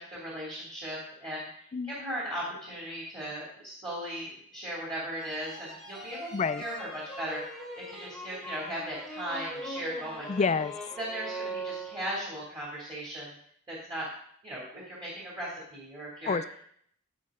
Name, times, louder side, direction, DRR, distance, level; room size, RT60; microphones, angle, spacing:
voice 1, 0.0-6.3 6.6-6.9 7.2-10.3 11.0-13.4 13.7-14.1 14.4-16.4, right 1 dB, 20° right, -6 dB, 2.6 m, -37 dB
sound 1, 5.2-12.4, right 1 dB, ahead, 1.2 m, -41 dB
voice 2, 6.3-6.6 10.3-10.7 16.3-16.6, left 5 dB, 30° left, 13 dB, 0.3 m, -28 dB
15.0 x 5.1 x 3.8 m, 0.65 s
head